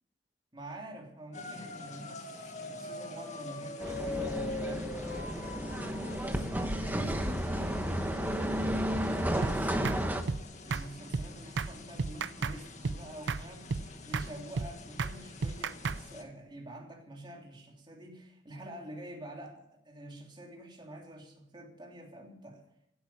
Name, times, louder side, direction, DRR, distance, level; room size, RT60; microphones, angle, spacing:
voice 1, 0.5-4.9 5.2-5.5 6.2-8.6 9.1-10.2 10.6-22.6, right 1 dB, 25° right, 0 dB, 3.1 m, -47 dB
sound 1, 1.3-16.2, left 3 dB, 40° left, 1.8 m, -44 dB
sound 2, 3.8-10.2, equal, 10° right, 1.1 m, -32 dB
sound 3, 9.4-9.6 9.8-10.0 10.3-10.4 10.7-10.9 11.1-11.3 11.6-11.7 12.0-12.6 12.8-13.0 13.3-13.4 13.7-13.9 14.1-14.3 14.6-14.7 15.0-15.1 15.4-16.0, right 4 dB, 85° right, 0.6 m, -32 dB
16.0 x 8.6 x 7.6 m, 0.78 s
head